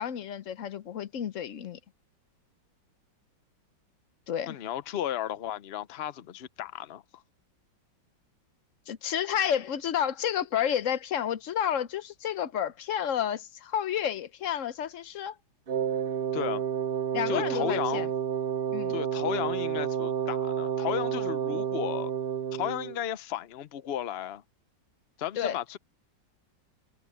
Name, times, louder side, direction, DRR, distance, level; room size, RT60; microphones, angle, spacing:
voice 1, 0.0-1.8 4.3-4.6 8.9-15.4 17.1-18.1 18.7-19.0 25.4-25.6, left 9 dB, 55° left, 0.9 m, -30 dB
voice 2, 4.5-7.2 16.3-16.6 17.3-18.1 18.9-22.1 22.5-24.4 25.2-25.8, left 11 dB, 90° left, 0.5 m, -34 dB
Wind instrument woodwind instrument, 15.7-23.0, right 8 dB, 50° right, 0.7 m, -30 dB
omnidirectional pair, 2.0 m